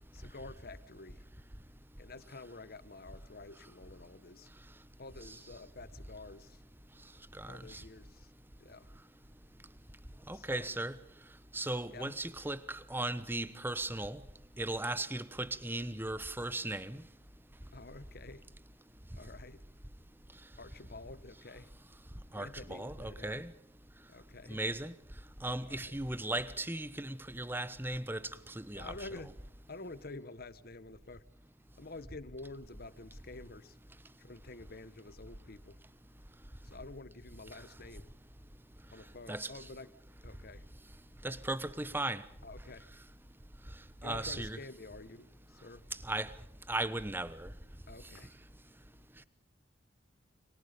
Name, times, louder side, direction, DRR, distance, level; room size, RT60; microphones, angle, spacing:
voice 1, 0.1-1.2 2.0-4.5 5.0-6.6 7.5-8.3 8.6-8.9 10.3-10.7 11.9-12.2 17.7-18.4 19.2-19.6 20.6-21.7 22.3-23.4 24.1-24.6 25.6-26.0 28.8-29.3 29.7-31.2 31.8-33.8 34.2-35.8 36.6-38.1 38.9-39.9 40.2-40.7 42.4-42.9 44.0-45.9 47.9-48.4, left 3 dB, 55° left, 1.3 m, -49 dB
voice 2, 7.4-7.8 10.3-10.9 11.5-14.2 14.6-17.0 22.3-23.5 24.5-24.9 25.4-28.2 28.5-28.9 39.3-39.5 41.2-42.2 44.0-44.6 46.1-46.3 46.7-47.5, right 2 dB, 10° right, 1.1 m, -37 dB
29.5 x 25.0 x 5.2 m
head